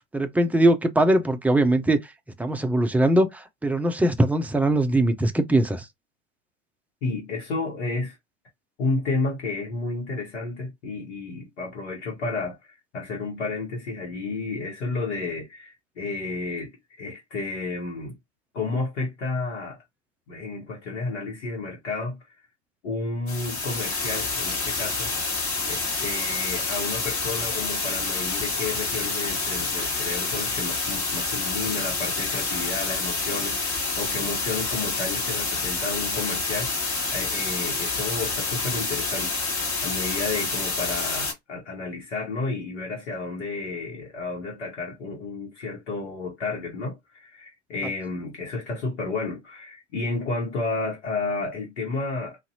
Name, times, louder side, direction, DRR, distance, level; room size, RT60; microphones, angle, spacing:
voice 1, 0.1-2.0 2.4-5.8, right 1 dB, 5° right, 0.4 m, -21 dB
voice 2, 7.0-8.2 8.8-16.7 17.0-18.2 18.5-19.8 20.3-22.2 22.8-25.1 25.6-52.4, left 3 dB, 70° left, 1.2 m, -31 dB
sound 1, 23.3-41.3, left 3 dB, 40° left, 1.5 m, -28 dB
2.6 x 2.5 x 2.6 m
figure-of-eight pair, 75°, 35 cm